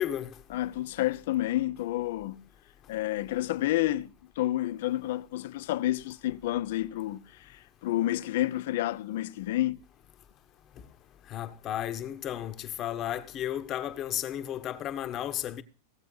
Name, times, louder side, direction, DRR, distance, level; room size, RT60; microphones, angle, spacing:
voice 1, 0.0-0.3 11.3-15.6, left 11 dB, 35° left, 1.2 m, -33 dB
voice 2, 0.5-2.4 2.9-4.1 4.4-9.8, left 15 dB, 70° left, 0.7 m, -30 dB
17.0 x 7.5 x 5.5 m
hypercardioid pair, 125°, 0 cm